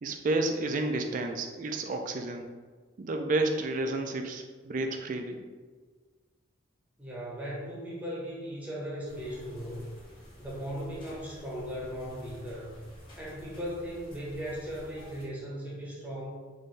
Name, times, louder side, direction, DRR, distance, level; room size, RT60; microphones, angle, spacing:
voice 1, 0.0-2.5 3.0-5.5, right 2 dB, 40° right, 5 dB, 0.4 m, -31 dB
voice 2, 7.0-9.9 10.4-12.8 13.2-16.5, equal, 10° right, -6 dB, 0.8 m, -38 dB
sound 1, 9.1-15.2, equal, 25° left, 1.3 m, -51 dB
4.4 x 2.6 x 3.2 m, 1.5 s
head